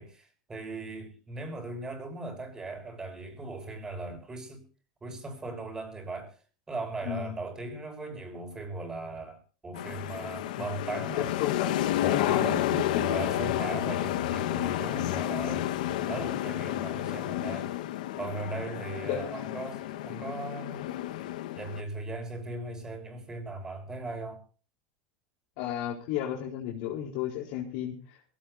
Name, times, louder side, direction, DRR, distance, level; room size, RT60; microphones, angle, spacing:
voice 1, 0.0-4.6 5.0-6.4 6.7-11.3 12.0-12.6 13.0-15.7 16.0-17.7 18.2-20.9 21.5-24.4, right 2 dB, 15° right, 6.4 m, -38 dB
sound 1, 9.8-21.8, left 13 dB, 85° left, 1.3 m, -31 dB
voice 2, 11.2-13.0 19.0-19.2 25.6-28.2, left 9 dB, 65° left, 4.1 m, -33 dB
23.0 x 17.0 x 2.7 m
supercardioid pair, 135°, 4 cm